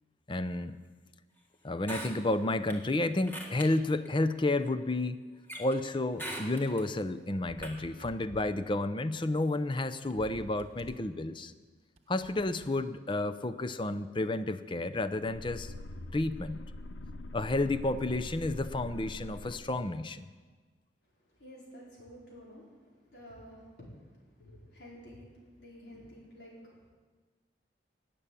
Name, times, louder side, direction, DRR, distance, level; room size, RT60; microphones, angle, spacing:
voice 1, 0.3-0.8 1.6-5.2 5.6-11.5 12.1-15.7 16.1-16.6 17.3-20.3, left 2 dB, 25° left, 12 dB, 0.6 m, -31 dB
sound 1, 1.8-2.7 3.3-3.7 4.1-4.2 5.5-5.8 6.2-6.8 7.6-7.7, right 1 dB, 10° left, 1.9 m, -40 dB
sound 2, 7.5-8.6 9.6-9.7 9.9-11.1 12.0-12.8, right 1 dB, 35° right, 1.0 m, -51 dB
sound 3, 15.1-20.0, left 1 dB, 90° left, 0.7 m, -44 dB
voice 2, 21.0-26.9, equal, 65° left, -5 dB, 4.8 m, -51 dB
19.0 x 6.9 x 8.7 m, 1.4 s
head